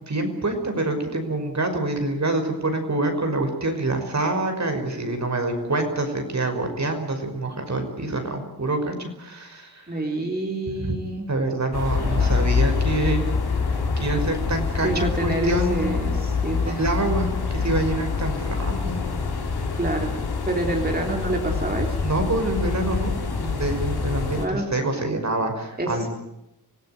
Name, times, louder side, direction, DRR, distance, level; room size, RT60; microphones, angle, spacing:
voice 1, 0.0-9.8 10.8-11.0 11.3-13.3 14.0-16.2 16.5-19.0 22.0-26.1, right 2 dB, 45° right, 5 dB, 5.6 m, -26 dB
voice 2, 9.9-11.2 12.0-12.5 14.8-16.8 19.8-20.1 20.5-22.0 24.4-24.7 25.8-26.1, right 2 dB, 25° right, 1 dB, 4.1 m, -27 dB
sound 1, 11.7-24.5, left 5 dB, 80° left, 3.9 m, -25 dB
26.0 x 16.5 x 9.3 m, 0.88 s
cardioid pair, 60°, 37 cm